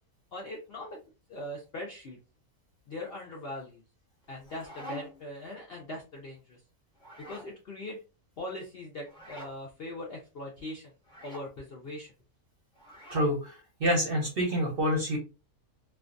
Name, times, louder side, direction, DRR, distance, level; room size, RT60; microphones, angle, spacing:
voice 1, 0.3-1.0 1.3-2.2 2.9-3.8 4.3-6.6 7.3-8.0 8.4-10.9 11.2-12.1, left 1 dB, 65° left, -1 dB, 0.6 m, -40 dB
sound 1, 4.2-5.3 6.9-7.5 9.1-9.6 11.0-11.5 12.7-13.4, equal, 5° left, 0.4 m, -46 dB
voice 2, 13.1-15.2, equal, 50° right, 0 dB, 0.7 m, -27 dB
2.5 x 2.3 x 2.4 m, 0.31 s
omnidirectional pair, 1.6 m